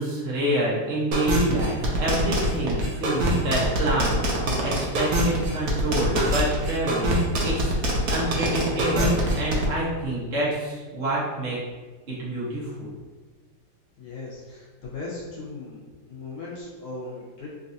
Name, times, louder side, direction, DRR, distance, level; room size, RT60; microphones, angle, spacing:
voice 1, 0.0-7.1 7.4-7.8 8.1-11.6 12.1-12.9, right 1 dB, 40° right, -7 dB, 1.0 m, -27 dB
sound 1, 1.1-9.7, right 1 dB, 80° right, 0.7 m, -24 dB
voice 2, 14.0-17.5, left 3 dB, 80° left, -5 dB, 1.8 m, -38 dB
4.0 x 2.6 x 2.7 m, 1.4 s
omnidirectional pair, 2.3 m